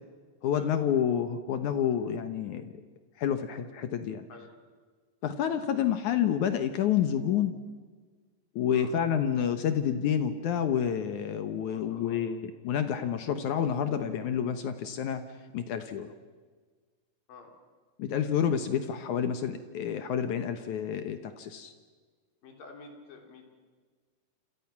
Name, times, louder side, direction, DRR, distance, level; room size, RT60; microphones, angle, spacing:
voice 1, 0.4-2.8 3.2-4.3 5.2-7.5 8.6-15.2 15.5-16.1 18.0-21.7, left 8 dB, 70° left, 9 dB, 2.4 m, -29 dB
voice 2, 11.7-12.2 17.3-17.5 22.4-23.5, left 3 dB, 85° left, 3 dB, 5.1 m, -49 dB
28.0 x 27.5 x 6.0 m, 1.5 s
omnidirectional pair, 3.9 m